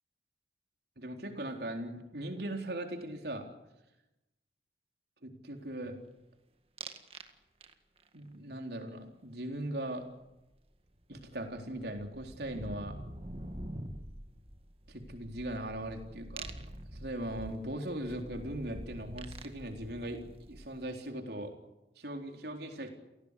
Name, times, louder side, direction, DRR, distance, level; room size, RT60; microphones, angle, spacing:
voice 1, 1.0-3.5 5.2-6.0 8.1-10.0 11.1-13.0 14.9-16.5 16.9-21.5 22.0-22.9, right 1 dB, 60° right, 4 dB, 4.1 m, -39 dB
sound 1, 6.8-7.3 7.6-8.1 10.5-10.6 10.8-20.9, right 1 dB, 30° right, 1.8 m, -46 dB
29.5 x 17.5 x 8.5 m, 0.94 s
head